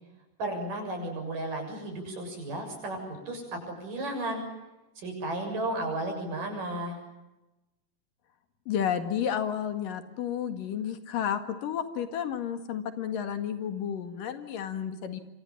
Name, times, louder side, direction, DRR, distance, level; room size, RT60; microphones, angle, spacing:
voice 1, 0.4-4.4 5.0-7.0, right 1 dB, 75° right, 4 dB, 8.6 m, -34 dB
voice 2, 8.7-15.2, left 9 dB, 80° left, 8 dB, 3.6 m, -31 dB
27.0 x 25.0 x 7.3 m, 1.0 s
omnidirectional pair, 3.8 m